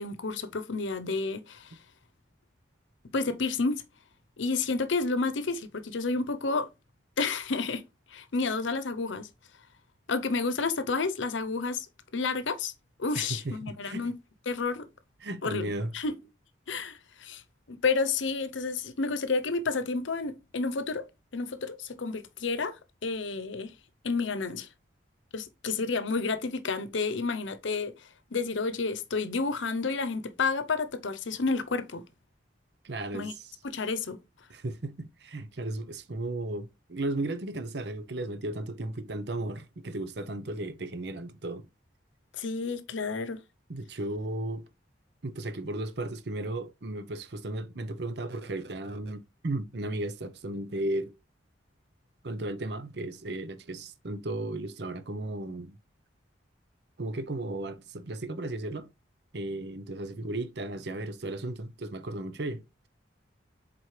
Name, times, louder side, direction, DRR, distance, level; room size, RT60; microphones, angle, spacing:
voice 1, 0.0-1.7 3.1-3.8 4.4-6.7 7.2-7.8 8.1-9.3 10.1-11.9 12.1-12.7 13.0-14.1 14.5-14.9 15.4-15.7 15.9-16.2 16.7-17.4 17.7-21.1 21.3-23.7 24.0-24.7 25.3-27.9 28.3-32.0 33.1-33.3 33.6-34.2 42.4-43.4, left 4 dB, 80° left, 0.8 m, -30 dB
voice 2, 13.1-14.1 15.2-15.9 32.8-33.5 34.5-41.7 43.7-44.6 45.2-51.1 52.2-55.8 57.0-58.9 59.3-62.6, right 2 dB, 60° right, 0.8 m, -35 dB
7.6 x 4.2 x 3.2 m
head